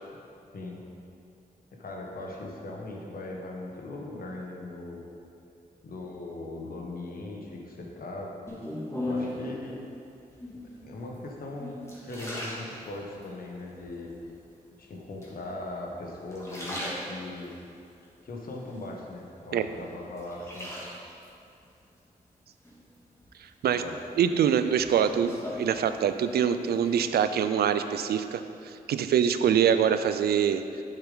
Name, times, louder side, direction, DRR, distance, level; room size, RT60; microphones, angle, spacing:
voice 1, 1.7-5.0 5.8-8.3 9.0-9.8 10.6-11.8 12.0-14.2 14.8-17.5 18.2-20.7 23.7-24.1, left 2 dB, 70° left, -1 dB, 1.4 m, -39 dB
sound 1, 8.5-9.5 10.3-10.8 11.3-13.3 13.8-14.4 15.2-15.9 16.2-17.5 18.0-19.2 19.6-21.3 22.6-23.3 23.7-26.3 26.6-27.1, left 1 dB, 15° left, 2.1 m, -38 dB
voice 2, 24.2-28.4 28.9-30.6, right 8 dB, 90° right, 10 dB, 0.4 m, -24 dB
8.5 x 7.3 x 3.9 m, 2.5 s
cardioid pair, 65°, 16 cm